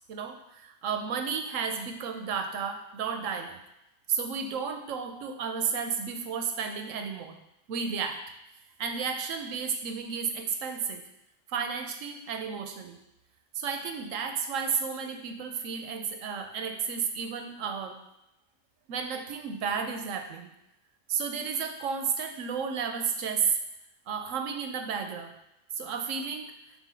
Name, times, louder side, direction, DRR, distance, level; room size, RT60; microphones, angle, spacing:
voice 1, 0.1-3.6 4.1-7.4 7.7-8.2 8.8-11.0 11.5-13.0 13.5-18.0 18.9-20.5 21.1-23.6 24.1-25.3 25.8-26.5, right 6 dB, 85° right, 6 dB, 1.1 m, -32 dB
4.6 x 3.9 x 5.5 m, 0.90 s
omnidirectional pair, 1.3 m